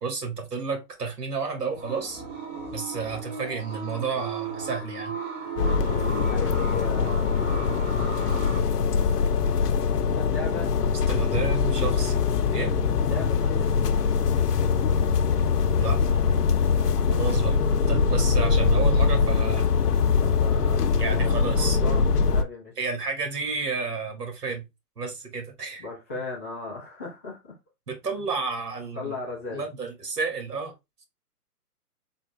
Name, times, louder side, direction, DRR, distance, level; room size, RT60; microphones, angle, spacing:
voice 1, 0.0-2.2 2.7-5.2 11.1-12.1 12.5-12.7 15.8-16.0 17.1-17.6 17.9-19.8 21.0-21.8 22.8-24.6 25.0-25.9 27.9-29.2 29.5-30.7, right 4 dB, 80° right, 1.9 m, -31 dB
sound 1, 1.7-8.6, right 4 dB, 45° right, 1.8 m, -36 dB
voice 2, 5.5-7.8 10.1-10.7 13.0-13.7 18.0-18.3 20.2-22.7 25.8-27.5 28.9-29.6, left 3 dB, 10° left, 0.4 m, -37 dB
sound 2, 5.6-22.4, left 5 dB, 80° left, 0.7 m, -23 dB
4.0 x 2.5 x 3.2 m
hypercardioid pair, 140°, 47 cm